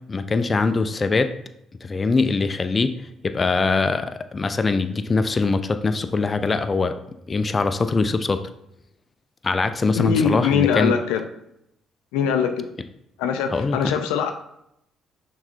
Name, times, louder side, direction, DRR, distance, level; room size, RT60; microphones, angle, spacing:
voice 1, 0.1-1.3 1.8-6.9 7.3-8.4 9.4-10.9 13.5-13.8, left 3 dB, 35° left, 10 dB, 0.6 m, -22 dB
voice 2, 9.9-11.2 12.1-12.7 13.2-14.3, left 7 dB, 80° left, 7 dB, 0.5 m, -22 dB
5.9 x 4.0 x 4.4 m, 0.79 s
hypercardioid pair, 55°, 0 cm